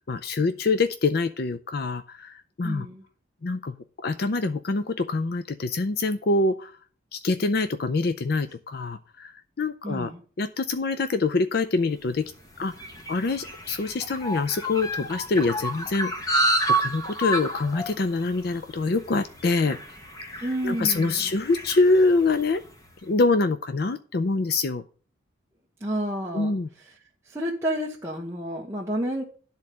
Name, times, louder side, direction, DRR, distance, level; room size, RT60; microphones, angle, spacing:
voice 1, 0.0-2.9 3.4-3.7 4.0-6.8 7.1-10.1 10.4-12.3 12.6-16.5 16.8-19.8 20.3-22.6 23.0-24.8 26.3-26.7, left 3 dB, 50° left, 11 dB, 0.5 m, -25 dB
voice 2, 2.6-3.0 9.8-10.2 20.4-21.3 25.8-26.6 27.2-29.2, equal, 15° right, -4 dB, 1.1 m, -30 dB
sound 1, 12.1-22.7, right 1 dB, 15° left, 1.2 m, -30 dB
10.5 x 4.0 x 7.4 m, 0.41 s
head